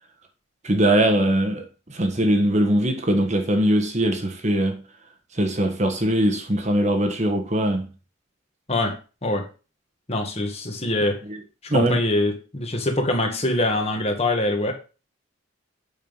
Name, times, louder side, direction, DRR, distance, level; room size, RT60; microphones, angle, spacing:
voice 1, 0.6-1.6 1.9-4.8 5.4-7.9 11.7-12.0, right 1 dB, 35° right, 1.2 m, -21 dB
voice 2, 10.1-11.2 11.6-14.7, left 1 dB, 30° left, 1.8 m, -24 dB
8.8 x 5.7 x 5.4 m
head